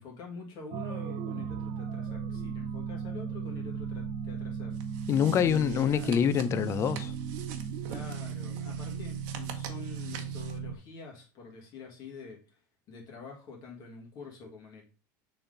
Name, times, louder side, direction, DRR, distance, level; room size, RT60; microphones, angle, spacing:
voice 1, 0.0-4.8 5.4-6.1 7.9-12.6 12.9-14.9, left 5 dB, 45° left, 1.8 m, -46 dB
sound 1, 0.7-10.8, right 7 dB, 55° right, 0.6 m, -36 dB
sound 2, 4.7-10.6, right 8 dB, 70° right, 1.0 m, -47 dB
voice 2, 5.1-7.1, left 8 dB, 30° left, 0.4 m, -25 dB
6.7 x 3.9 x 3.8 m
cardioid pair, 145°, 10 cm